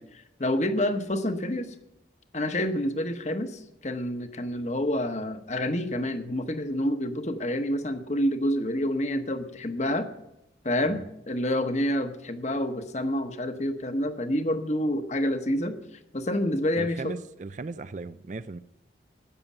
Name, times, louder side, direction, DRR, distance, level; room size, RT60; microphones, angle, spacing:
voice 1, 0.0-1.7 2.3-10.1 10.6-15.8 16.1-17.1, left 1 dB, 40° left, 1.1 m, -28 dB
voice 2, 16.8-18.6, right 3 dB, 40° right, 0.4 m, -37 dB
13.0 x 9.4 x 7.4 m
head